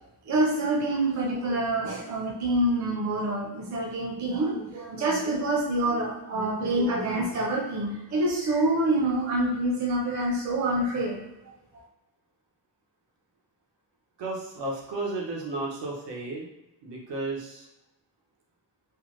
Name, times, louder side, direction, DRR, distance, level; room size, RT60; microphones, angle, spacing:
voice 1, 0.3-11.2, right 1 dB, 45° right, -3 dB, 0.6 m, -26 dB
voice 2, 14.2-16.5 16.8-17.7, right 2 dB, 80° right, -3 dB, 1.0 m, -33 dB
3.4 x 2.0 x 3.1 m, 0.95 s
wide cardioid pair, 170°, 42 cm